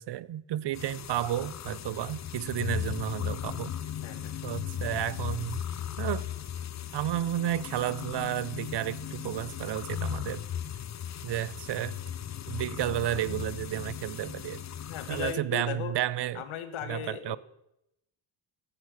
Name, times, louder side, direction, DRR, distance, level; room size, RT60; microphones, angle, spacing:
voice 1, 0.0-3.7 4.4-5.6 6.0-6.3 6.9-10.4 11.2-12.0 12.5-14.6 15.1-16.4 16.9-17.4, right 12 dB, 60° right, 0.7 m, -32 dB
sound 1, 0.7-15.3, left 9 dB, 35° left, 0.6 m, -37 dB
voice 2, 4.0-4.3 14.9-15.9 16.3-17.4, left 9 dB, 90° left, 1.6 m, -37 dB
14.0 x 11.0 x 6.4 m
cardioid pair, 125°, 48 cm